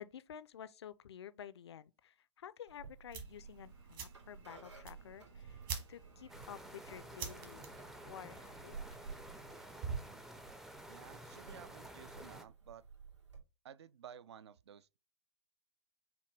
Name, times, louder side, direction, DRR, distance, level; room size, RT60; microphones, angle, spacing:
voice 1, 0.0-5.6 5.9-7.7 8.0-8.8, left 9 dB, 65° left, 0.4 m, -51 dB
sound 1, 2.7-13.4, right 4 dB, 90° right, 2.1 m, -57 dB
sound 2, 3.1-10.2, right 6 dB, 50° right, 1.3 m, -47 dB
sound 3, 6.3-12.4, right 1 dB, ahead, 0.4 m, -52 dB
voice 2, 10.9-12.8 13.6-15.0, right 9 dB, 70° right, 0.4 m, -54 dB
5.8 x 2.2 x 3.2 m
figure-of-eight pair, 115°, 15 cm